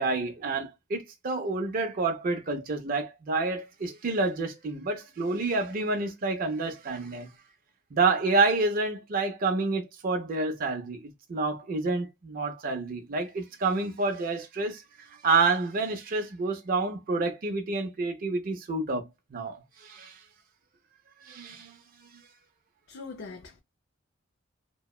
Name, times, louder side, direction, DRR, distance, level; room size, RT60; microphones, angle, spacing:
voice 1, 0.0-7.3 7.9-11.0 11.3-14.8 15.2-20.2 21.3-21.8, right 3 dB, 45° right, 0.4 m, -28 dB
voice 2, 22.9-23.6, left 4 dB, 55° left, 0.4 m, -42 dB
2.8 x 2.0 x 2.2 m
head